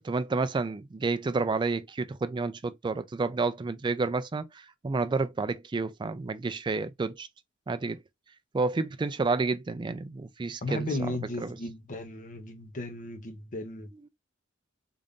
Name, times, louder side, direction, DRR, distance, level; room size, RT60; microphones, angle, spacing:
voice 1, 0.0-7.3 7.7-8.0 8.5-11.6, right 3 dB, 20° right, 0.3 m, -30 dB
voice 2, 10.6-13.9, left 2 dB, 40° left, 0.8 m, -35 dB
3.8 x 2.5 x 3.6 m
head